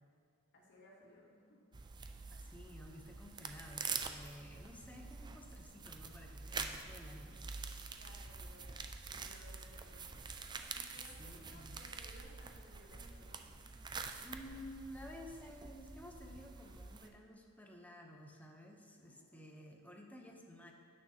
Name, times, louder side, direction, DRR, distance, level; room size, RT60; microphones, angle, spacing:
voice 1, 0.5-1.8 8.0-10.2 10.7-13.4 19.0-19.4, left 1 dB, 50° left, -4 dB, 2.1 m, -61 dB
sound 1, 1.7-17.1, right 4 dB, 20° right, 0.4 m, -46 dB
voice 2, 2.3-7.5 11.2-11.7 14.2-20.7, left 1 dB, 5° left, 2 dB, 0.8 m, -53 dB
15.5 x 6.4 x 2.9 m, 2.3 s
head